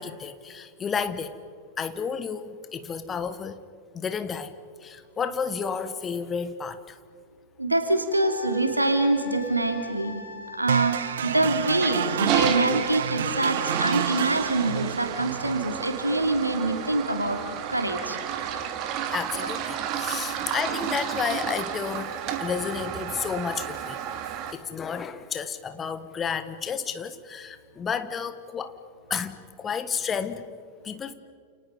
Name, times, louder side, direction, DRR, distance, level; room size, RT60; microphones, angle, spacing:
voice 1, 0.0-1.3 1.8-3.6 3.9-4.5 4.8-6.9 19.1-22.1 22.4-24.0 24.5-28.7 29.1-30.4 30.8-31.1, left 6 dB, 20° left, 11 dB, 1.6 m, -31 dB
voice 2, 7.6-10.2 10.6-17.4 17.7-18.2, right 2 dB, 85° right, 5 dB, 3.0 m, -25 dB
Wind instrument woodwind instrument, 8.1-12.4, left 3 dB, 65° left, 3.3 m, -42 dB
sound 1, 10.7-18.7, right 9 dB, 65° right, 0.8 m, -31 dB
Toilet flush, 11.6-24.5, right 9 dB, 40° right, 2.3 m, -32 dB
29.5 x 29.0 x 5.4 m, 2.1 s
figure-of-eight pair, 90°, 0 cm